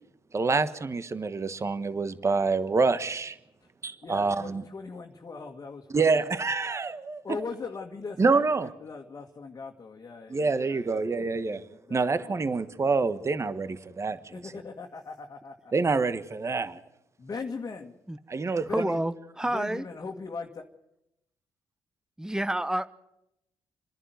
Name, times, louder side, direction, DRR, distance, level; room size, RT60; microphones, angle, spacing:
voice 1, 0.3-3.4 3.8-4.6 5.9-7.2 8.2-8.7 10.3-11.6 11.9-14.3 15.7-16.8 18.3-18.9, right 4 dB, 35° right, 13 dB, 1.3 m, -27 dB
voice 2, 4.0-6.2 7.2-12.7 13.5-13.7 14.3-15.7 17.2-17.9 18.6-19.0 19.5-20.7, left 4 dB, 40° left, 2 dB, 1.9 m, -40 dB
voice 3, 18.6-19.9 22.2-22.9, right 1 dB, 5° right, 13 dB, 1.0 m, -29 dB
27.5 x 11.0 x 9.5 m, 0.85 s
cardioid pair, 75°, 9 cm